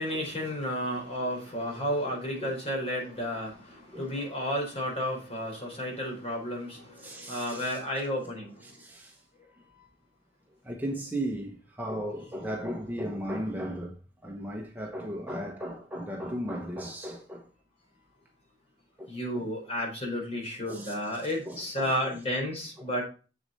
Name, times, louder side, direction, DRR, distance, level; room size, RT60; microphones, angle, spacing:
voice 1, 0.0-3.5 3.9-6.8 7.3-8.5 19.1-23.0, equal, 35° left, 4.4 m, -32 dB
voice 2, 2.0-2.5 3.9-4.5 7.0-7.8 8.6-9.2 9.7-9.9 10.6-17.5 19.0-19.5 20.7-22.2 22.8-23.0, equal, 10° right, 1.1 m, -37 dB
7.6 x 6.8 x 4.0 m
head